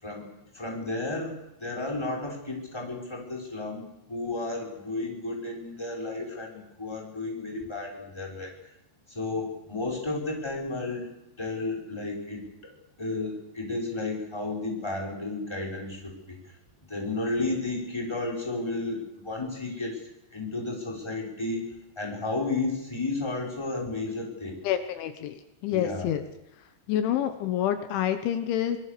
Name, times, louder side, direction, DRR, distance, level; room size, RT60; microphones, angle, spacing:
voice 1, 0.0-8.6 9.1-11.1 11.4-12.7 13.0-16.4 16.8-24.6 25.7-26.1 28.7-28.8, left 2 dB, 5° left, -1 dB, 5.1 m, -33 dB
voice 2, 24.7-25.4 25.6-26.2 26.9-28.8, left 10 dB, 80° left, 8 dB, 3.6 m, -27 dB
25.5 x 22.0 x 6.9 m, 0.90 s
omnidirectional pair, 5.5 m